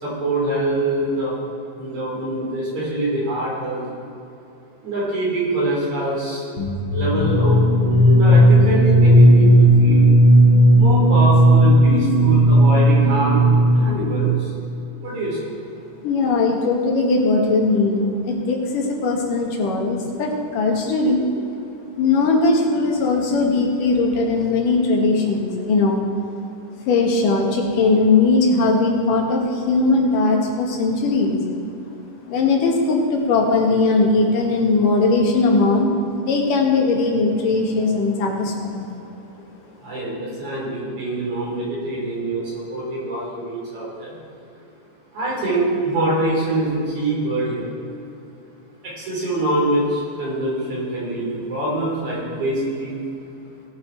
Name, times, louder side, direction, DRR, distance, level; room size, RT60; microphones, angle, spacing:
voice 1, 0.0-1.4 1.8-3.9 4.8-6.4 6.9-10.0 10.7-14.3 15.0-15.5 39.8-44.2 45.1-47.6 48.8-53.0, right 1 dB, 65° right, -5 dB, 5.0 m, -24 dB
sound 1, 6.6-14.2, right 1 dB, 40° left, 1.6 m, -14 dB
voice 2, 16.0-21.2 22.0-26.0 26.9-31.4 32.3-35.9 36.2-38.9, left 3 dB, 85° left, 0 dB, 3.3 m, -19 dB
19.5 x 7.5 x 4.6 m, 2.7 s
omnidirectional pair, 3.7 m